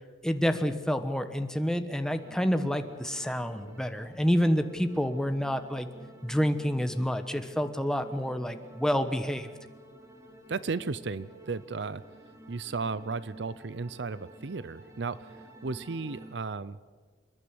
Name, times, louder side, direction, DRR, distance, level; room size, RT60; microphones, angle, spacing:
voice 1, 0.2-5.9 6.2-9.5, equal, 5° left, 8 dB, 1.1 m, -28 dB
sound 1, 2.0-16.4, right 1 dB, 15° right, 2.7 m, -51 dB
voice 2, 10.5-12.0 12.5-16.8, right 4 dB, 65° right, 17 dB, 0.6 m, -35 dB
27.5 x 11.0 x 9.8 m, 1.4 s
head